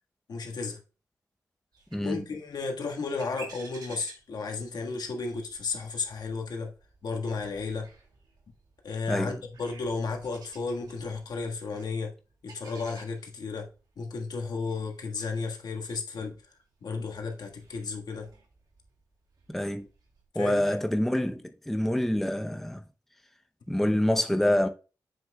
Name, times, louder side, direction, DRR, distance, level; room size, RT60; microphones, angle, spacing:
voice 1, 0.3-0.8 2.0-6.7 7.0-7.9 8.8-12.1 12.4-13.7 14.0-16.4 16.8-18.3 20.3-20.8, left 4 dB, 75° left, 1.5 m, -33 dB
sound 1, 1.7-20.3, right 3 dB, 75° right, 2.3 m, -54 dB
voice 2, 1.9-2.2 9.1-9.4 19.5-19.9 20.3-22.8 23.7-24.7, left 1 dB, 5° left, 0.6 m, -26 dB
7.4 x 6.3 x 2.2 m
cardioid pair, 85°, 7 cm